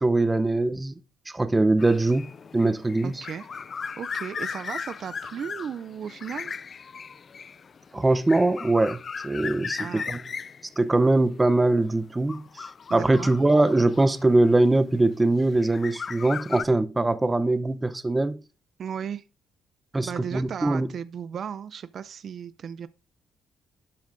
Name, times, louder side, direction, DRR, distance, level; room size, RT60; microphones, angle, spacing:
voice 1, 0.0-0.9 1.3-2.3 2.5-3.2 7.9-10.2 10.8-18.4 19.9-20.9, right 2 dB, 15° right, 0.7 m, -22 dB
sound 1, 1.8-14.7 15.4-16.6, left 6 dB, 45° left, 0.3 m, -37 dB
voice 2, 3.0-3.5 4.0-6.5 9.8-10.1 12.9-13.3 18.8-19.2 20.0-22.9, right 8 dB, 60° right, 0.4 m, -35 dB
12.0 x 7.1 x 2.6 m
cardioid pair, 90°, 0 cm